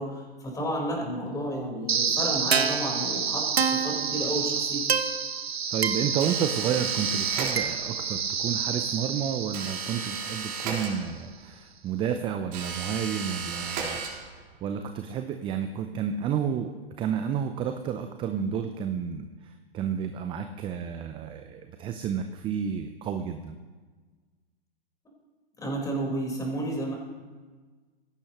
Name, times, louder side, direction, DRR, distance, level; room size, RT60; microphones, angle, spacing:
voice 1, 0.0-4.8 25.6-26.9, right 1 dB, 10° left, -1 dB, 4.4 m, -32 dB
sound 1, 1.9-10.9, right 6 dB, 85° right, 1.1 m, -28 dB
voice 2, 5.7-23.6, right 8 dB, 15° right, 7 dB, 0.6 m, -31 dB
sound 2, 6.2-8.0 9.5-11.4 12.5-14.6, right 5 dB, 45° right, 4.0 m, -35 dB
20.0 x 16.5 x 3.1 m, 1.4 s
hypercardioid pair, 120°, 31 cm